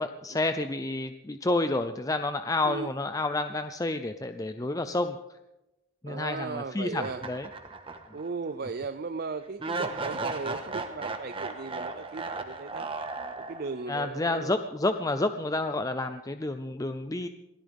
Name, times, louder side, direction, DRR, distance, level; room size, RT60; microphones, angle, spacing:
voice 1, 0.0-5.2 6.0-7.5 13.9-17.3, left 2 dB, 20° left, 8 dB, 0.5 m, -29 dB
voice 2, 6.1-7.2 8.1-12.9 13.4-14.6, right 4 dB, 55° right, 10 dB, 0.5 m, -36 dB
sound 1, 7.0-8.3 8.6-8.7 9.6-13.9, right 3 dB, 30° right, 1.4 m, -35 dB
23.0 x 17.0 x 3.6 m, 0.97 s
head